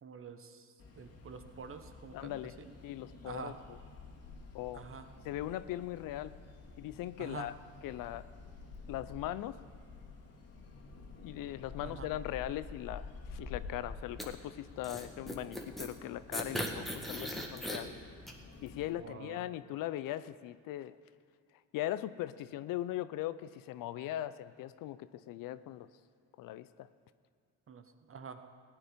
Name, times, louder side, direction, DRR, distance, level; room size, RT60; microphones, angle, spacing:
voice 1, 0.0-2.7 3.2-3.5 4.7-5.1 7.2-7.5 11.8-12.1 18.8-19.5 27.7-28.4, right 6 dB, 40° right, 8 dB, 1.1 m, -47 dB
sound 1, 0.8-18.9, left 4 dB, 45° left, 2.2 m, -50 dB
voice 2, 2.1-2.6 2.8-3.5 4.5-4.9 5.2-6.3 6.8-7.5 7.8-8.3 8.9-9.6 11.2-17.9 18.6-21.0 21.7-25.9 26.4-26.9, left 13 dB, 70° left, 15 dB, 0.6 m, -39 dB
sound 2, 14.2-14.3 14.8-15.9 16.3-17.8 18.3-18.4, equal, ahead, 1.7 m, -38 dB
16.0 x 9.7 x 5.2 m, 2.3 s
supercardioid pair, 85°, 34 cm